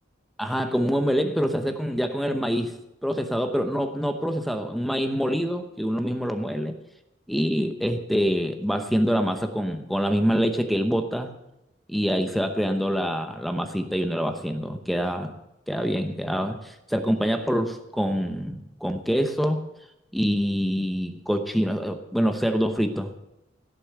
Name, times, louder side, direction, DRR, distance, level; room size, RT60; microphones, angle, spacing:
voice 1, 0.4-2.8 3.0-6.8 7.3-11.3 11.9-15.4 15.7-19.7 20.1-23.1, equal, ahead, 7 dB, 0.8 m, -25 dB
16.5 x 6.9 x 8.0 m, 0.92 s
head